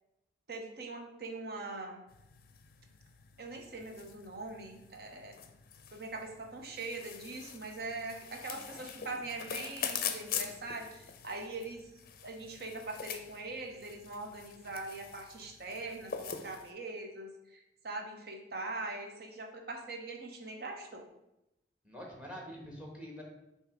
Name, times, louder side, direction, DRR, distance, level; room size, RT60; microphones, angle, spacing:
voice 1, 0.5-2.0 3.4-5.4 5.9-11.9 12.2-21.0, right 2 dB, 55° right, 2 dB, 0.9 m, -42 dB
sound 1, 2.1-16.7, left 8 dB, 50° left, 0.5 m, -44 dB
voice 2, 8.5-9.1 21.8-23.2, equal, 5° right, 0 dB, 1.2 m, -46 dB
6.9 x 2.9 x 4.9 m, 0.90 s
head